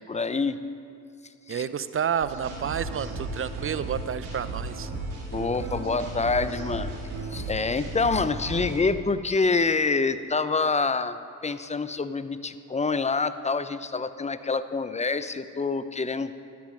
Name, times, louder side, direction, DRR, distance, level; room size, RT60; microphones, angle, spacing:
voice 1, 0.1-0.6 1.5-1.6 5.3-7.0 7.3-11.2 11.4-16.3, left 4 dB, 15° left, 13 dB, 0.6 m, -26 dB
voice 2, 1.5-4.9, right 8 dB, 30° right, 14 dB, 0.6 m, -30 dB
sound 1, 2.2-8.8, right 3 dB, 90° right, 1.9 m, -35 dB
12.5 x 9.4 x 5.3 m, 2.5 s
hypercardioid pair, 45°, 42 cm